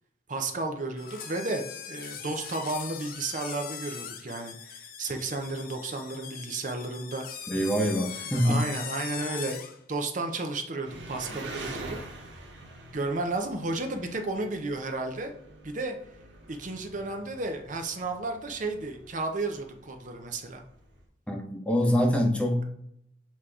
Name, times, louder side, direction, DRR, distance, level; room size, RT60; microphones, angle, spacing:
voice 1, 0.3-7.3 8.3-12.0 12.9-15.3 15.6-15.9 16.5-20.6, right 2 dB, 45° right, 4 dB, 0.7 m, -33 dB
sound 1, 1.0-9.8, left 8 dB, 50° left, 0.7 m, -41 dB
voice 2, 7.5-8.6 21.3-22.7, equal, 5° left, 1 dB, 0.9 m, -25 dB
Engine, 10.8-21.0, right 2 dB, 80° right, 1.5 m, -46 dB
7.3 x 2.9 x 4.8 m, 0.75 s
head